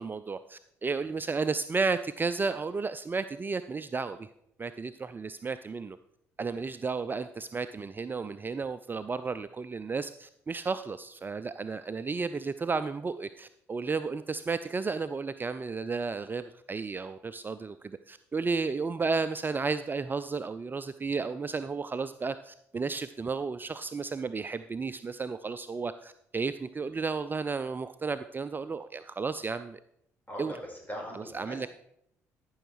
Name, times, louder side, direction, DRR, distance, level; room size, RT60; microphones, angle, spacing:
voice 1, 0.0-4.3 4.6-6.0 6.4-29.8 30.4-30.5 31.1-31.7, right 4 dB, 25° right, 12 dB, 0.4 m, -33 dB
voice 2, 30.3-31.7, equal, 20° left, 0 dB, 4.8 m, -41 dB
13.5 x 6.4 x 4.7 m, 0.74 s
hypercardioid pair, 50°, 8 cm